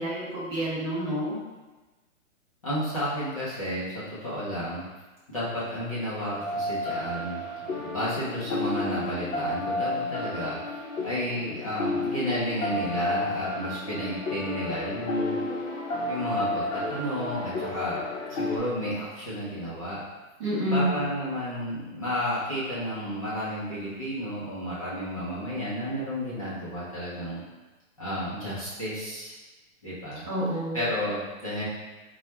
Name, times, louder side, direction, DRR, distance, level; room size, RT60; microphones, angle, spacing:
voice 1, 0.0-1.4 20.4-21.0 30.2-30.8, right 1 dB, 20° right, -11 dB, 0.7 m, -28 dB
voice 2, 2.6-4.8 5.3-10.6 11.0-15.4 16.1-18.0 18.3-20.0 20.7-27.4 28.0-29.3 29.8-30.2 30.7-31.6, equal, 25° left, -11 dB, 0.6 m, -32 dB
sound 1, 6.3-18.6, left 2 dB, 65° left, 0.8 m, -32 dB
3.0 x 2.3 x 4.1 m, 1.2 s
hypercardioid pair, 175°, 42 cm